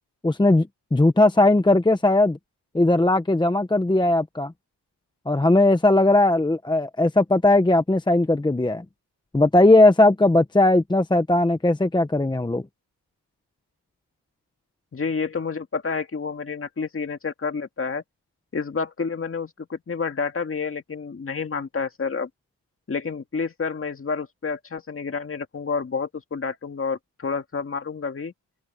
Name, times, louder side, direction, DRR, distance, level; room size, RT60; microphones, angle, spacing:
voice 1, 0.2-2.4 2.7-4.5 5.3-8.8 9.3-12.6, left 2 dB, 10° left, 1.0 m, -18 dB
voice 2, 14.9-18.0 18.5-22.3 22.9-28.3, left 5 dB, 30° left, 2.0 m, -29 dB
wide cardioid pair, 130°, 41 cm